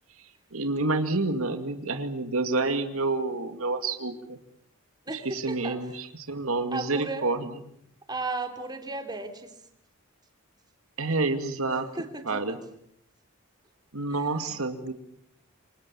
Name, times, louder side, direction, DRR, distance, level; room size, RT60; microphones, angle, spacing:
voice 1, 0.5-4.4 5.1-7.5 11.0-11.9 12.2-12.6 13.9-14.9, right 3 dB, 75° right, 7 dB, 2.4 m, -28 dB
voice 2, 5.1-5.8 6.7-7.3 8.1-9.5 11.7-12.1 14.1-14.6, right 3 dB, 20° right, 5 dB, 3.6 m, -35 dB
28.5 x 26.0 x 7.2 m, 0.72 s
head